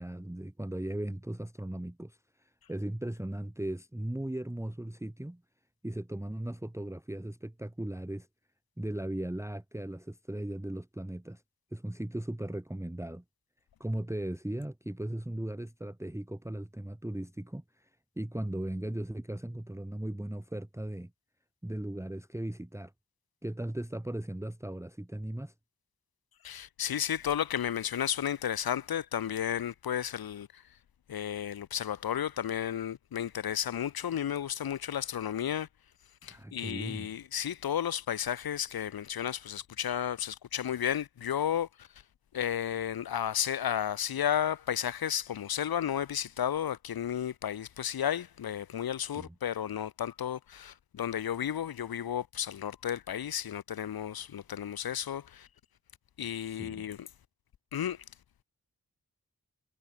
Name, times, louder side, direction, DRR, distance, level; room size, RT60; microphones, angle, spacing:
voice 1, 0.0-2.2 2.7-5.4 5.8-8.3 8.8-11.4 11.7-13.2 13.8-17.8 18.2-21.1 21.6-22.9 23.4-25.5 36.3-37.1 49.1-49.3 56.5-56.9, right 1 dB, 10° right, 1.0 m, -37 dB
voice 2, 26.4-30.6 31.1-35.7 36.2-41.9 42.3-55.5 56.2-57.1 57.7-58.0, left 9 dB, 80° left, 0.6 m, -33 dB
wide cardioid pair, 55°, 36 cm